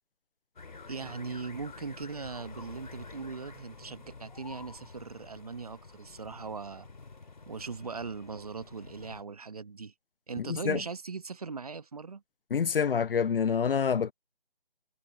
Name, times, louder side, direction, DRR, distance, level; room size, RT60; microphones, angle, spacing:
sound 1, 0.6-9.2, left 4 dB, 50° left, 2.4 m, -49 dB
voice 1, 0.9-6.9 7.5-9.9 10.3-12.2, right 4 dB, 40° right, 1.2 m, -39 dB
voice 2, 10.4-10.8 12.5-14.1, left 7 dB, 70° left, 0.4 m, -27 dB
figure-of-eight pair, 160°, 29 cm